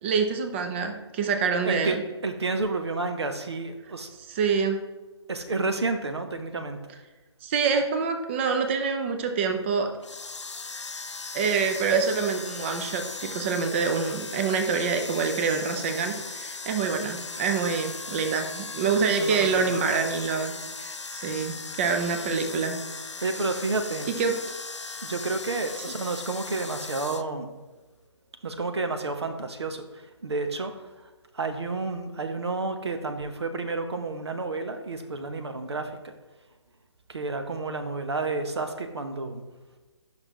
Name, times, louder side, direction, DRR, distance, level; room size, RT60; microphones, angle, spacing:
voice 1, 0.0-2.0 4.3-4.8 7.4-9.9 11.3-22.8 24.1-24.4, right 5 dB, 25° right, 6 dB, 0.7 m, -26 dB
voice 2, 1.6-4.1 4.5-4.6 5.3-6.9 19.1-19.8 21.8-21.9 23.2-24.1 25.0-27.5 28.4-36.1 37.1-39.4, right 3 dB, 65° right, 7 dB, 1.0 m, -31 dB
sound 1, 10.0-27.2, left 4 dB, 75° left, 0.5 m, -38 dB
10.5 x 5.9 x 3.0 m, 1.2 s
figure-of-eight pair, 140°, 15 cm